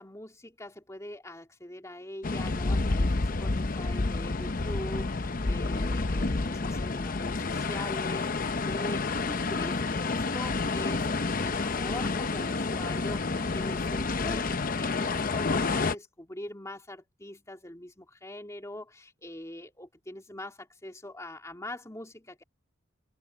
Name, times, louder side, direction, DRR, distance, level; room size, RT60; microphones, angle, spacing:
voice 1, 0.0-22.4, left 1 dB, 15° left, 3.0 m, -43 dB
sound 1, 2.2-16.0, left 3 dB, 45° left, 0.7 m, -29 dB
head